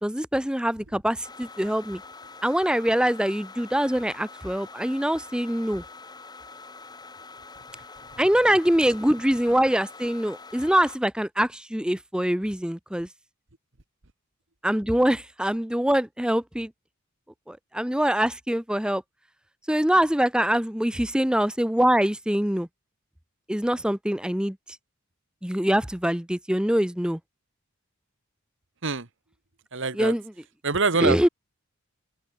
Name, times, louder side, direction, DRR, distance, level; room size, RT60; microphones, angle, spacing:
voice 1, 0.0-2.0 2.4-5.8 8.2-13.1 14.6-16.7 17.5-19.0 19.7-22.7 23.5-24.8 25.4-27.2 29.9-30.3 31.0-31.3, equal, 5° right, 0.8 m, -24 dB
sound 1, 1.2-11.0, left 4 dB, 20° left, 1.2 m, -45 dB
voice 2, 29.7-30.1 30.6-31.3, right 4 dB, 55° right, 1.7 m, -25 dB
open air
head